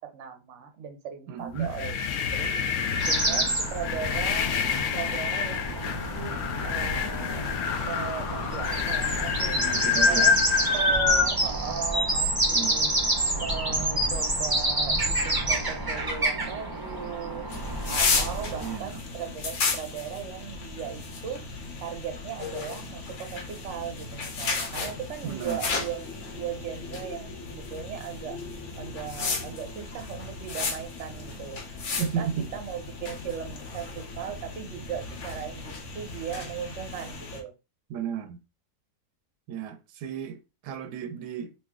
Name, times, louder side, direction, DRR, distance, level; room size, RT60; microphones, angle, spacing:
voice 1, 0.0-2.0 2.3-2.6 3.0-4.6 4.9-7.4 7.8-9.6 10.0-10.3 10.7-12.9 13.4-17.5 17.9-21.4 21.8-26.0 26.3-28.4 28.7-31.6 32.2-37.5, right 8 dB, 55° right, 0.9 m, -37 dB
voice 2, 1.3-1.7 3.3-3.5 9.5-10.4 12.5-12.9 18.6-19.0 25.2-25.6 32.0-32.5 37.9-38.4 39.5-41.5, right 7 dB, 90° right, 1.2 m, -34 dB
sound 1, 1.5-11.3, left 6 dB, 75° left, 0.7 m, -27 dB
sound 2, 3.0-18.8, right 2 dB, 25° right, 0.5 m, -28 dB
sound 3, 17.5-37.4, left 4 dB, 55° left, 1.0 m, -34 dB
3.0 x 2.8 x 3.5 m
omnidirectional pair, 1.8 m